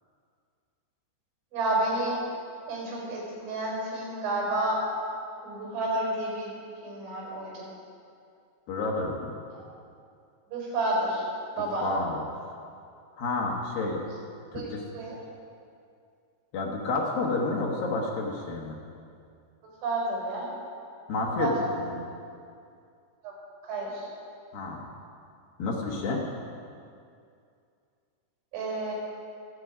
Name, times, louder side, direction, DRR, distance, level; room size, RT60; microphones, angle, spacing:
voice 1, 1.5-2.2 2.7-4.8 5.4-6.5 6.8-7.7 9.5-9.6 10.5-11.2 11.5-11.9 14.5-14.6 14.9-15.2 19.8-20.5 21.3-21.5 23.2-23.3 23.7-24.1 28.5-28.9, right 2 dB, 90° right, -3 dB, 7.6 m, -30 dB
voice 2, 8.7-9.3 11.8-12.2 13.2-14.0 14.5-14.8 16.5-18.8 21.1-21.5 21.9-22.1 24.5-24.8 25.6-26.3, left 3 dB, 65° left, -1 dB, 2.8 m, -30 dB
26.5 x 8.9 x 5.0 m, 2.4 s
omnidirectional pair, 5.3 m